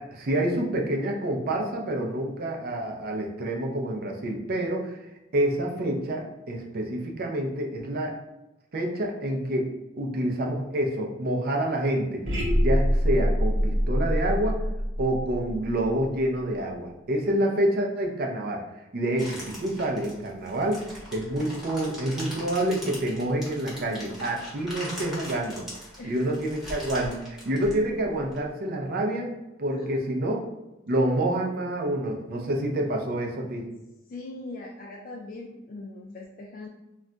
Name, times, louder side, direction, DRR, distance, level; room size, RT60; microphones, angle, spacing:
voice 1, 0.0-5.0 5.3-8.2 8.7-12.2 12.6-14.6 15.0-18.6 18.9-20.9 21.1-25.7 26.0-29.3 29.6-30.4 30.9-33.7, right 1 dB, 50° right, 1 dB, 0.5 m, -27 dB
sound 1, 12.2-16.4, equal, 80° right, 0.9 m, -25 dB
sound 2, 19.2-28.4, equal, ahead, 0.9 m, -41 dB
voice 2, 33.7-36.7, left 2 dB, 45° left, -2 dB, 0.3 m, -41 dB
2.3 x 2.1 x 3.7 m, 0.98 s
head